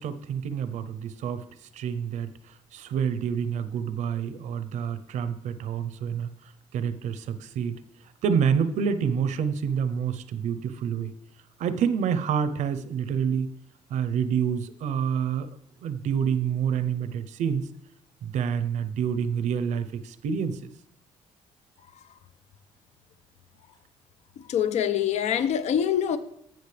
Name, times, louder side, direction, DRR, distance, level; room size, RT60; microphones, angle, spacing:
voice 1, 0.0-1.5 1.7-6.3 6.7-7.7 8.2-11.1 11.6-13.5 13.9-15.5 15.8-17.7 18.2-20.7, right 7 dB, 75° right, 0.7 m, -28 dB
voice 2, 24.5-26.2, left 9 dB, 65° left, 0.7 m, -24 dB
15.5 x 6.2 x 3.4 m
cardioid pair, 110°, 12 cm